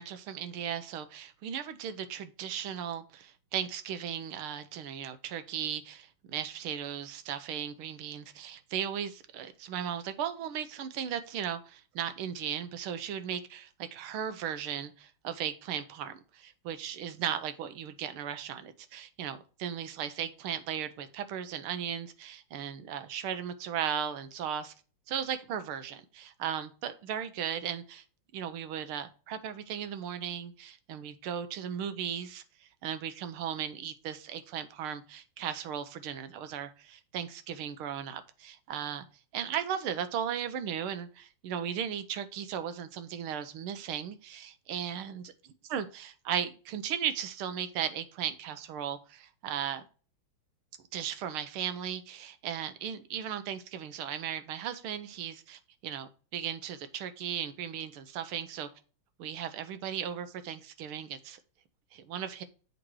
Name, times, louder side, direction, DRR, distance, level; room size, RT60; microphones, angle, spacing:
voice 1, 0.0-24.7 25.1-28.0 28.3-39.0 39.3-49.8 50.9-58.7 59.2-61.4 61.9-62.4, right 9 dB, 90° right, 1.7 m, -36 dB
7.7 x 4.1 x 4.6 m
omnidirectional pair, 2.3 m